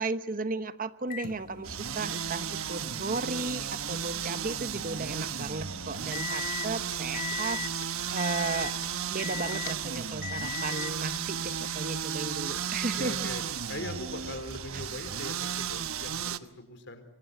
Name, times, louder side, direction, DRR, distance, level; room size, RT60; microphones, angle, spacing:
voice 1, 0.0-8.8 9.1-13.3 14.7-14.8, right 3 dB, 40° right, 12 dB, 1.0 m, -35 dB
Microwave oven, 1.1-6.7 7.1-7.8 8.2-8.8 9.2-9.8 10.2-11.0 12.0-12.1 14.1-14.2, left 8 dB, 40° left, 1.0 m, -40 dB
sound 1, 1.6-16.4, right 8 dB, 90° right, 1.1 m, -34 dB
Computer keyboard, 6.1-12.2, left 9 dB, 75° left, 2.5 m, -49 dB
voice 2, 13.0-13.4 13.7-17.0, left 1 dB, 55° left, 9 dB, 4.1 m, -40 dB
25.5 x 24.5 x 8.4 m, 0.78 s
head